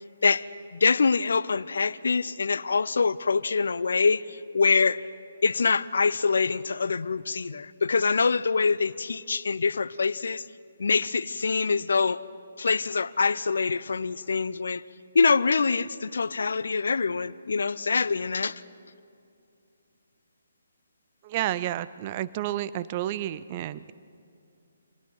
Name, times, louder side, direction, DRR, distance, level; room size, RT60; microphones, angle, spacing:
voice 1, 0.7-5.0 5.4-10.4 10.8-12.2 12.6-14.8 15.1-18.6, left 4 dB, 65° left, 0.6 m, -25 dB
voice 2, 21.2-23.9, right 13 dB, 30° right, 0.5 m, -30 dB
29.5 x 26.5 x 4.7 m
figure-of-eight pair, 140°, 0 cm